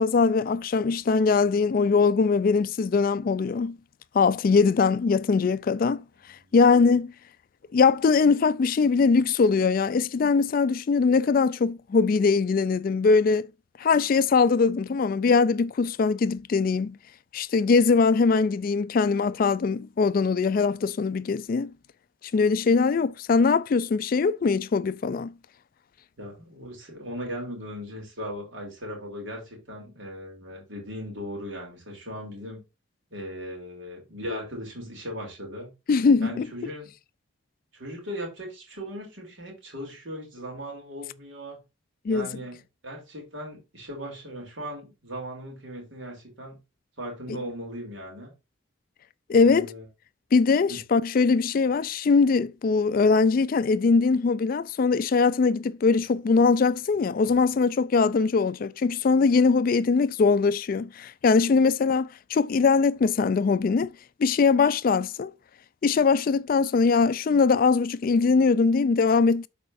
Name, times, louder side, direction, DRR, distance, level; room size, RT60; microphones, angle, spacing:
voice 1, 0.0-3.8 4.1-6.0 6.5-7.1 7.7-13.5 13.8-17.0 17.3-21.7 22.3-25.3 35.9-36.5 42.1-42.3 47.3-47.4 49.3-49.7 50.3-63.9 64.2-65.3 65.8-69.5, left 4 dB, 45° left, 0.3 m, -21 dB
voice 2, 6.3-6.6 26.2-32.6 33.1-35.7 36.2-36.9 37.7-41.6 42.1-46.6 47.0-48.3 49.3-49.8 50.7-50.8, equal, 70° right, 3.1 m, -38 dB
11.5 x 4.3 x 2.5 m
head